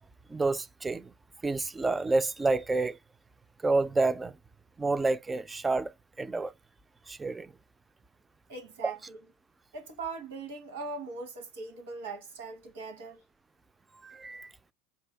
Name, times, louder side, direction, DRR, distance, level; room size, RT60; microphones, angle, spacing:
voice 1, 0.3-1.1 1.4-3.0 3.6-4.4 4.8-5.9 6.2-6.5 7.1-7.5 14.0-14.5, right 3 dB, 15° right, 0.3 m, -29 dB
voice 2, 8.5-9.2 9.7-13.2, right 4 dB, 90° right, 1.2 m, -40 dB
4.4 x 2.7 x 3.3 m
supercardioid pair, 115°, 0 cm